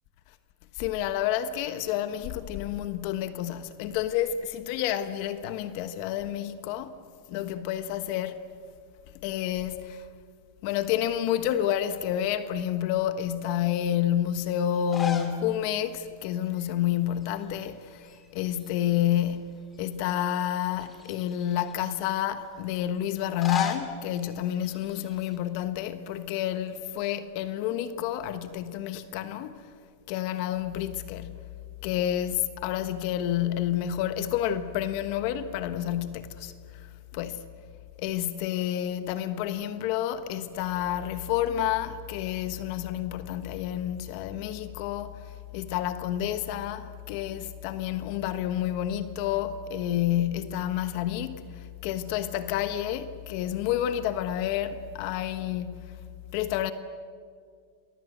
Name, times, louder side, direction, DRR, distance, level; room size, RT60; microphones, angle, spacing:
voice 1, 0.7-7.0 7.3-8.4 9.1-10.1 10.6-29.7 30.1-31.5 31.8-37.4 38.0-56.0 56.3-56.7, left 11 dB, 55° left, 1.3 m, -29 dB
sound 1, 14.8-15.4 15.8-15.9 17.2-17.7 18.0-19.2 19.7-19.8 20.7-21.9 23.2-25.4, left 5 dB, 20° left, 2.7 m, -37 dB
28.0 x 21.5 x 8.0 m
supercardioid pair, 140°, 0 cm